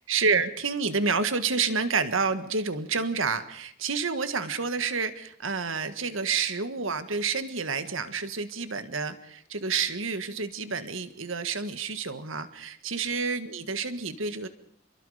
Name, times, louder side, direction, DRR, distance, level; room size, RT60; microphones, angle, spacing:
voice 1, 0.1-14.5, right 5 dB, 70° right, 10 dB, 1.6 m, -29 dB
28.5 x 22.5 x 5.1 m, 0.64 s
head